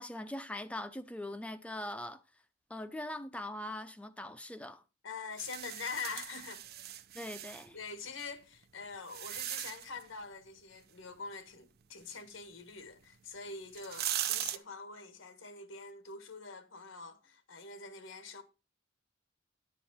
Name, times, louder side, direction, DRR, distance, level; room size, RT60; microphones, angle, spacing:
voice 1, 0.0-2.2 2.7-4.8 7.1-7.8, left 1 dB, 5° left, 0.5 m, -41 dB
voice 2, 5.0-6.6 7.7-18.4, left 4 dB, 90° left, 1.5 m, -44 dB
sound 1, 5.4-7.7 8.4-10.0 13.0-13.1 13.6-14.6, right 12 dB, 55° right, 0.6 m, -38 dB
10.5 x 7.3 x 4.2 m
head